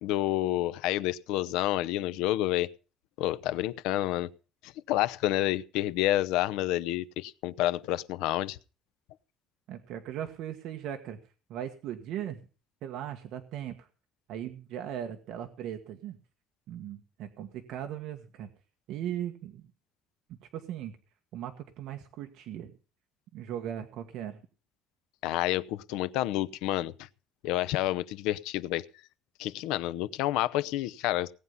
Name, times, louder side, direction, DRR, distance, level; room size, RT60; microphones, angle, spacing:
voice 1, 0.0-2.7 3.2-4.3 4.6-8.6 25.2-26.9 27.4-28.8 29.4-31.3, left 15 dB, 90° left, 17 dB, 0.7 m, -29 dB
voice 2, 9.7-11.2 11.5-12.4 12.8-13.9 14.3-16.2 16.7-18.5 18.9-19.7 20.5-20.9 21.3-22.7 23.3-24.4, right 10 dB, 60° right, 5 dB, 1.6 m, -38 dB
18.5 x 9.4 x 5.6 m, 0.36 s
cardioid pair, 175°, 0 cm